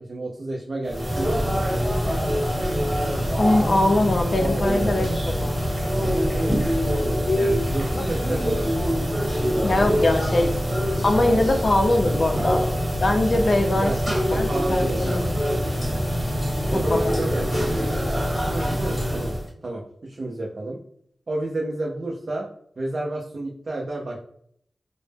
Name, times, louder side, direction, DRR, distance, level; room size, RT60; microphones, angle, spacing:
voice 1, 0.0-1.9 7.3-8.8 12.3-12.5 13.7-15.2 16.7-17.7 18.4-19.3 19.6-20.8 21.3-22.5 22.8-24.2, right 2 dB, 55° right, -2 dB, 0.4 m, -31 dB
sound 1, 0.9-19.5, equal, 10° right, 1.2 m, -24 dB
voice 2, 3.4-5.6 7.3-7.6 9.6-10.5 11.0-12.6 13.0-13.9 14.3-15.3 16.9-17.1, left 1 dB, 55° left, 4 dB, 0.5 m, -22 dB
2.0 x 2.0 x 3.2 m, 0.66 s
cardioid pair, 60°, 0 cm